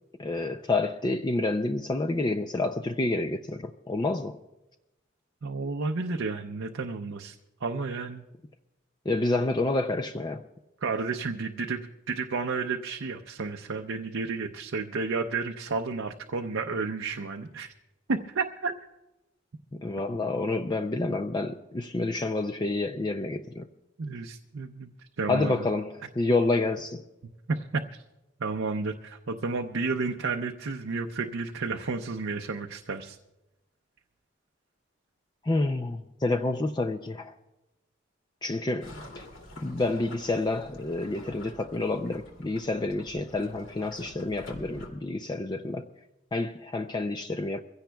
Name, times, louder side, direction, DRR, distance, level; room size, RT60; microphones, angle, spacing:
voice 1, 0.2-4.4 9.1-10.4 19.7-23.7 25.3-27.0 35.4-37.3 38.4-39.3 39.6-45.9 46.3-47.6, left 2 dB, 20° left, 0.4 m, -29 dB
voice 2, 5.4-7.4 7.6-8.2 10.8-17.7 18.1-18.7 24.0-24.9 25.2-25.7 27.5-28.0 28.4-33.2, right 4 dB, 75° right, 0.6 m, -31 dB
sound 1, 38.8-44.9, left 1 dB, 85° left, 2.5 m, -48 dB
23.5 x 16.0 x 2.3 m
head